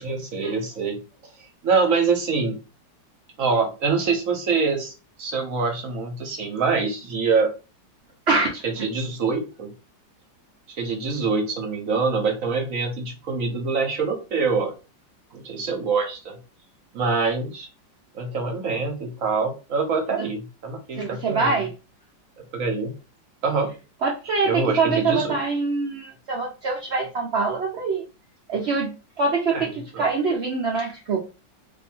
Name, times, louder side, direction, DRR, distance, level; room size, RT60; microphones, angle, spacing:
voice 1, 0.0-1.0 1.6-2.6 3.4-4.9 5.2-7.5 8.6-9.7 10.8-14.7 15.3-16.4 16.9-17.7 18.1-21.6 22.5-22.9 23.4-23.7 24.5-25.4 29.5-30.1, right 4 dB, 60° right, 4 dB, 1.0 m, -25 dB
voice 2, 21.0-21.7 24.0-28.0 28.5-28.9 29.2-31.2, right 4 dB, 75° right, -1 dB, 0.6 m, -24 dB
2.7 x 2.6 x 4.3 m, 0.31 s
omnidirectional pair, 2.1 m